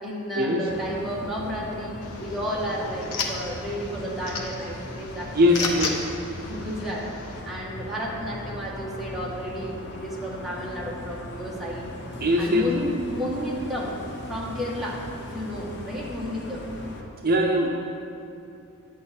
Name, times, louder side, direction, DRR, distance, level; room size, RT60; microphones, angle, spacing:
voice 1, 0.0-5.9 6.3-7.1 7.4-11.9 12.4-13.9 14.3-16.7, equal, ahead, -6 dB, 1.5 m, -32 dB
sound 1, 0.7-17.0, left 1 dB, 55° left, 1.0 m, -39 dB
sound 2, 2.0-7.4, left 4 dB, 85° left, 1.0 m, -35 dB
voice 2, 5.3-5.9 12.2-12.7 17.2-17.7, left 1 dB, 45° right, 0 dB, 0.7 m, -21 dB
10.0 x 7.6 x 4.3 m, 2.6 s
head